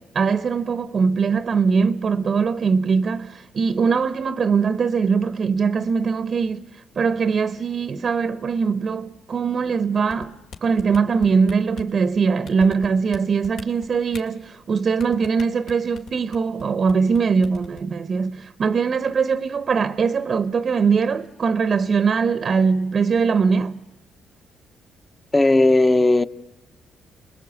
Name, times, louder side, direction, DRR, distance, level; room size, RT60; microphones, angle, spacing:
voice 1, 0.0-6.7 7.0-23.8, right 5 dB, 50° right, 0.8 m, -21 dB
sound 1, 10.1-11.9 12.5-13.2 13.4-14.2 15.0-16.6 16.9-17.2 17.4-17.8, left 5 dB, 80° left, 2.9 m, -38 dB
voice 2, 25.3-26.2, left 2 dB, 20° left, 0.8 m, -16 dB
29.0 x 21.5 x 8.2 m
cardioid pair, 90°, 0 cm